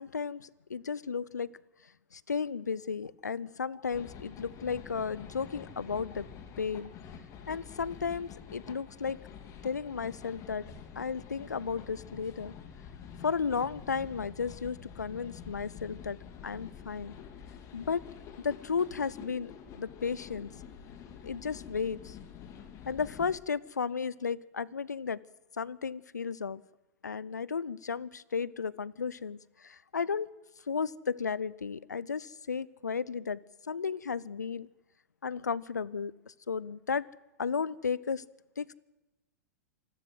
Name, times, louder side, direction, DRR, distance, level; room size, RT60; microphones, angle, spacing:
voice 1, 0.0-1.5 2.1-6.3 6.6-6.9 7.5-9.2 9.6-10.7 11.0-12.5 13.2-17.1 17.7-18.0 18.4-19.5 19.8-20.5 21.2-22.2 22.9-25.2 25.6-26.6 27.0-30.3 30.7-33.4 33.7-34.7 35.2-37.0 37.4-38.2 38.6-38.8, left 5 dB, 85° left, 23 dB, 0.6 m, -34 dB
sound 1, 3.9-23.4, left 7 dB, 35° left, 2.8 m, -48 dB
27.0 x 13.0 x 7.9 m, 1.0 s
figure-of-eight pair, 105°, 9 cm